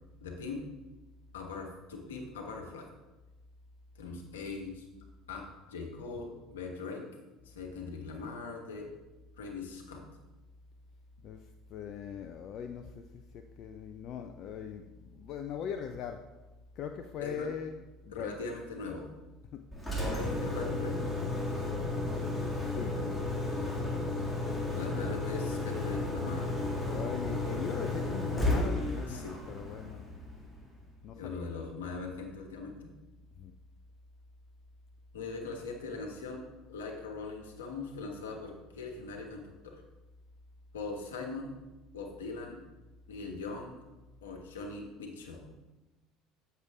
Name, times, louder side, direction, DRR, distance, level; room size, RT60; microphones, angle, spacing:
voice 1, 0.2-0.6 1.3-2.9 3.9-4.8 5.3-7.0 7.4-8.9 9.4-10.1 17.2-17.5 18.1-19.1 20.0-21.0 24.8-26.7 29.1-29.4 31.1-32.9 35.1-36.4 36.7-39.8 40.7-41.5 41.9-42.6 43.1-43.8 44.2-45.5, left 4 dB, 80° left, 1 dB, 1.2 m, -41 dB
voice 2, 11.2-16.3 16.8-18.4 19.5-19.6 22.3-23.0 26.8-30.0 31.0-31.7 33.4-33.5, left 7 dB, 50° left, 6 dB, 0.5 m, -41 dB
Engine, 19.7-30.7, left 2 dB, 5° left, 2.0 m, -33 dB
8.0 x 6.8 x 3.6 m, 1.1 s
hypercardioid pair, 70°, 0 cm